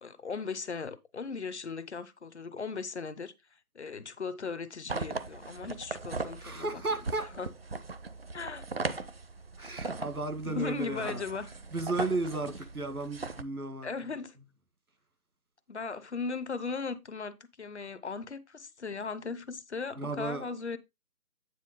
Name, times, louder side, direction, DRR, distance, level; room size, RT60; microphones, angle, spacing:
voice 1, 0.0-3.3 3.7-6.8 7.2-7.5 8.3-8.6 10.4-11.5 13.8-14.4 15.7-20.8, left 4 dB, 50° left, 0.7 m, -37 dB
sound 1, 4.9-13.4, right 3 dB, 45° right, 0.6 m, -39 dB
voice 2, 6.4-7.3 9.6-11.2 11.7-13.9 20.0-20.5, right 3 dB, 85° right, 1.8 m, -34 dB
9.5 x 3.5 x 5.1 m
figure-of-eight pair, 150°, 44 cm